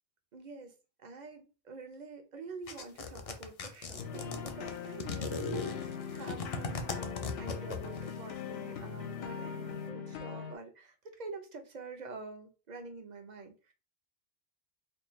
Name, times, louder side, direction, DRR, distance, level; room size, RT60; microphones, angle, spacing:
voice 1, 0.3-0.7 1.0-13.7, right 3 dB, 50° right, 0.7 m, -47 dB
sound 1, 2.7-8.1, left 4 dB, 45° left, 0.5 m, -37 dB
sound 2, 4.0-10.6, left 7 dB, 80° left, 0.8 m, -41 dB
4.4 x 2.3 x 3.1 m
omnidirectional pair, 1.0 m